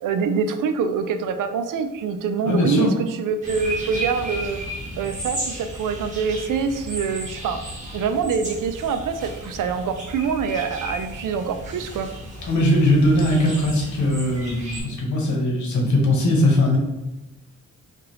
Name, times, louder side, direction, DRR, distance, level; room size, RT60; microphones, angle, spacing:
voice 1, 0.0-2.9 3.2-4.6 5.0-7.6 7.9-12.1, right 5 dB, 75° right, 8 dB, 0.5 m, -25 dB
voice 2, 2.4-2.9 12.5-16.8, left 1 dB, 65° left, -1 dB, 1.1 m, -20 dB
sound 1, 3.4-14.8, right 1 dB, 25° right, 1.2 m, -34 dB
4.7 x 2.5 x 3.0 m, 1.0 s
wide cardioid pair, 165°, 32 cm